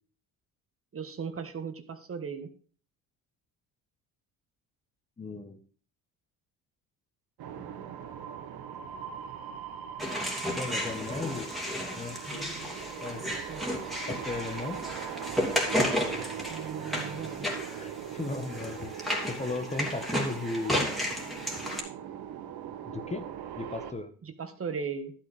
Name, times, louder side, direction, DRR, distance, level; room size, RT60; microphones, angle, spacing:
voice 1, 0.9-2.5 13.5-13.7 16.5-17.5 24.2-25.1, right 6 dB, 35° right, 8 dB, 1.5 m, -37 dB
voice 2, 5.2-5.6 7.7-7.9 10.6-11.5 11.9-12.2 13.0-13.2 14.1-14.8 17.8-18.9 19.3-20.9 22.9-23.2 23.6-24.1, left 3 dB, 15° left, 8 dB, 1.2 m, -36 dB
sound 1, 7.4-23.9, right 9 dB, 65° right, 1.3 m, -40 dB
sound 2, 10.0-21.8, equal, ahead, 2.7 m, -33 dB
11.5 x 8.7 x 3.3 m, 0.42 s
supercardioid pair, 90°, 39 cm